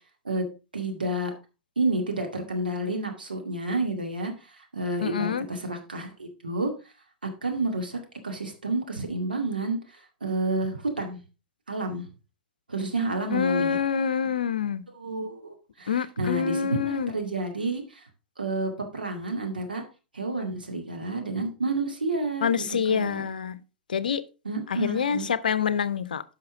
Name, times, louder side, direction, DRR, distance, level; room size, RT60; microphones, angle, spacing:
voice 1, 0.7-1.3 1.8-6.7 7.2-11.2 11.7-12.1 12.7-13.8 14.9-18.0 18.4-19.8 20.1-23.2 24.4-25.3, right 2 dB, 75° right, 2.1 m, -30 dB
voice 2, 5.0-5.5 13.3-14.8 15.9-17.2 22.4-23.6 23.9-24.2 24.7-26.2, left 7 dB, 65° left, 0.6 m, -26 dB
10.5 x 5.9 x 3.7 m
figure-of-eight pair, 100°, 5 cm